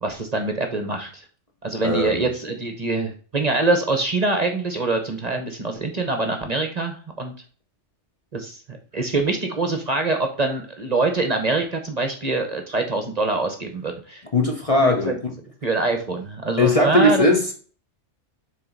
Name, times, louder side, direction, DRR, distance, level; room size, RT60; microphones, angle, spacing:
voice 1, 0.0-1.2 1.6-7.3 8.3-14.2 14.8-15.2 15.6-17.3, right 3 dB, 35° right, 5 dB, 0.9 m, -24 dB
voice 2, 1.8-2.3 14.3-15.3 16.6-17.5, left 1 dB, 30° left, 2 dB, 0.9 m, -19 dB
7.5 x 3.4 x 3.9 m, 0.42 s
omnidirectional pair, 1.3 m